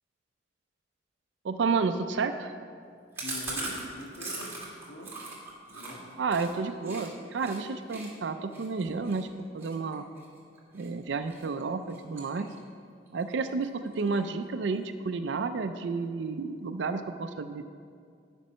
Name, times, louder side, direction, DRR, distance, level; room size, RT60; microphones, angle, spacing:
voice 1, 1.4-2.5 6.2-10.0 10.7-12.5 13.1-17.7, right 4 dB, 70° right, 8 dB, 0.4 m, -31 dB
voice 2, 3.2-4.5 4.9-5.2 5.7-6.1, left 1 dB, 60° left, -2 dB, 1.7 m, -43 dB
Chewing mastication, 3.2-7.1 7.4-7.6 7.9-10.9 11.3-11.6 11.9-12.8 13.1-13.2 13.5-13.6 13.9-14.4, right 2 dB, 10° right, 1.8 m, -40 dB
10.5 x 5.3 x 5.5 m, 2.3 s
head